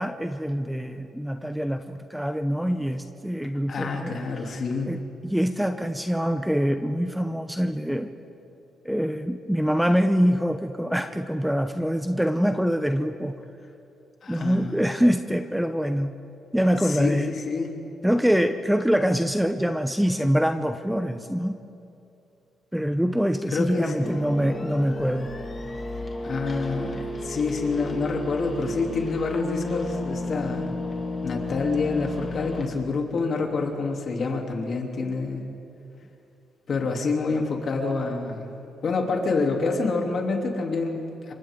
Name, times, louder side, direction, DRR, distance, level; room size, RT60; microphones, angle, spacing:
voice 1, 0.0-4.2 4.8-8.1 8.8-13.3 14.3-16.1 16.5-17.3 18.0-21.6 22.7-25.3, equal, 5° right, 8 dB, 0.9 m, -24 dB
voice 2, 3.7-4.9 14.2-14.8 16.8-17.7 23.5-24.1 26.2-30.7 31.2-35.4 36.7-38.5 38.8-41.3, left 4 dB, 50° left, 1 dB, 3.2 m, -27 dB
sound 1, 24.0-32.6, left 2 dB, 30° left, 2.8 m, -33 dB
27.5 x 24.5 x 3.9 m, 2.7 s
cardioid pair, 90°, 0 cm